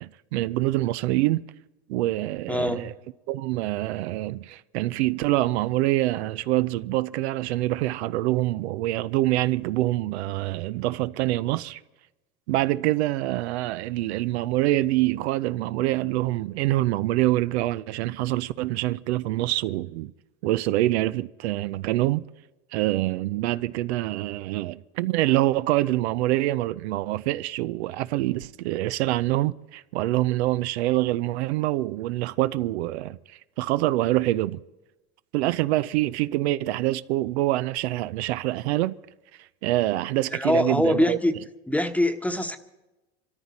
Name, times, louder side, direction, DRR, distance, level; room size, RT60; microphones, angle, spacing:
voice 1, 0.0-1.4 1.9-2.9 3.3-11.8 12.5-20.1 20.4-22.2 22.7-33.2 33.6-34.6 35.3-39.0 39.6-41.2, right 16 dB, 80° right, 0.6 m, -25 dB
voice 2, 2.5-2.8 40.3-41.3 41.7-42.6, left 1 dB, 5° left, 1.1 m, -23 dB
24.5 x 13.5 x 4.2 m
supercardioid pair, 100°, 32 cm